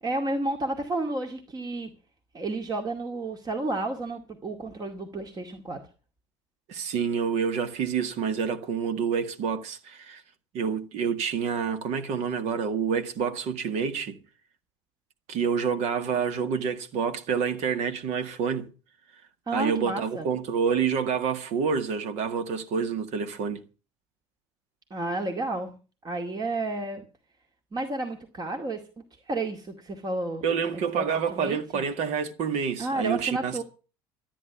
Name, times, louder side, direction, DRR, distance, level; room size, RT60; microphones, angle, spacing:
voice 1, 0.0-1.9 2.3-5.8 19.5-20.3 24.9-25.8 26.0-27.0 27.7-28.8 29.3-30.5 30.7-31.8 32.8-33.6, right 2 dB, 30° right, 2.2 m, -31 dB
voice 2, 6.7-10.2 10.5-14.2 15.3-18.7 19.5-23.6 30.4-33.6, right 6 dB, 60° right, 1.8 m, -28 dB
13.5 x 10.0 x 7.1 m
hypercardioid pair, 65°, 13 cm